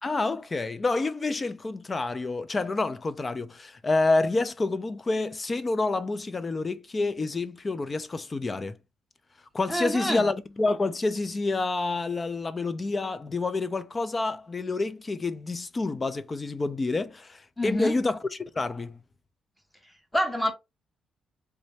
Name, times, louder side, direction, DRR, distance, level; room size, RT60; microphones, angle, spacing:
voice 1, 0.0-8.8 9.5-19.0, left 3 dB, 30° left, 0.5 m, -28 dB
voice 2, 9.7-10.2 17.6-17.9 20.1-20.5, equal, 10° left, 1.1 m, -26 dB
3.4 x 2.6 x 3.1 m
cardioid pair, 90°, 0 cm